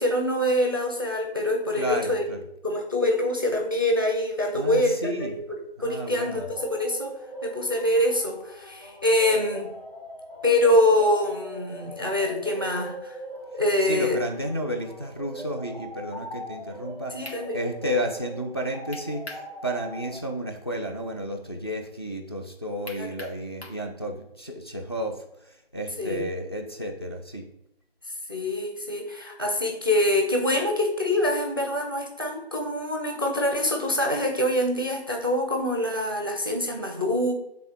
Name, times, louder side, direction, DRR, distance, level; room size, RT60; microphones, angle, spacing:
voice 1, 0.0-2.2 2.6-5.4 5.8-7.1 7.4-9.7 10.4-13.2 13.5-14.2 17.1-17.6 22.9-23.1 26.0-26.3 28.3-37.3, left 1 dB, 20° right, 2 dB, 0.6 m, -25 dB
voice 2, 1.8-2.4 4.5-5.3 5.8-6.4 13.8-27.5, equal, 25° left, 5 dB, 0.6 m, -32 dB
Ice Cream song (Distressed), 6.2-20.2, equal, 10° left, 1.0 m, -41 dB
sound 1, 17.2-17.4 18.9-19.5 19.9-20.0 22.9-23.8, left 2 dB, 85° left, 2.0 m, -41 dB
7.0 x 3.5 x 5.1 m, 0.82 s
figure-of-eight pair, 160°, 31 cm